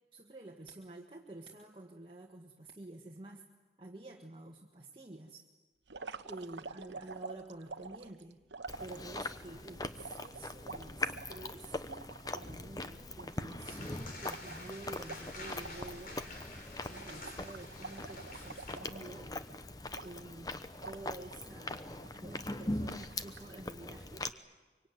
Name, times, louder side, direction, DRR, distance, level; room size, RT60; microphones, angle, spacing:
voice 1, 0.1-3.4 3.8-5.5 6.2-8.4 8.8-11.8 12.3-16.3 16.9-19.3 19.9-24.3, right 2 dB, 30° right, 0 dB, 1.5 m, -49 dB
sound 1, 5.9-9.5 10.0-12.5 12.9-13.0 13.2-16.1 16.4-16.6 16.9-19.4 19.9-20.5 20.8-21.5 22.0-22.6 23.0-23.5, right 4 dB, 90° right, 1.1 m, -48 dB
Chewing mastication, 8.7-24.3, left 2 dB, 20° left, 0.9 m, -42 dB
sound 2, 13.6-18.8, left 2 dB, 50° left, 4.0 m, -49 dB
24.5 x 24.5 x 9.3 m, 1.2 s
head